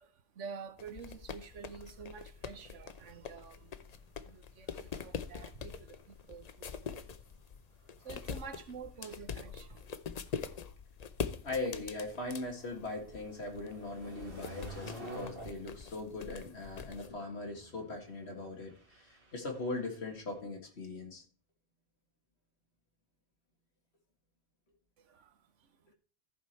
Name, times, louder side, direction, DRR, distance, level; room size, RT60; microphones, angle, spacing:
voice 1, 0.0-10.0 25.0-25.9, right 6 dB, 80° right, 1.3 m, -49 dB
sound 1, 0.8-17.1, left 6 dB, 45° left, 0.6 m, -44 dB
sound 2, 11.1-20.4, right 2 dB, 50° right, 2.2 m, -51 dB
voice 2, 11.4-21.2, left 2 dB, 60° left, 2.2 m, -40 dB
14.5 x 4.9 x 4.4 m
omnidirectional pair, 1.2 m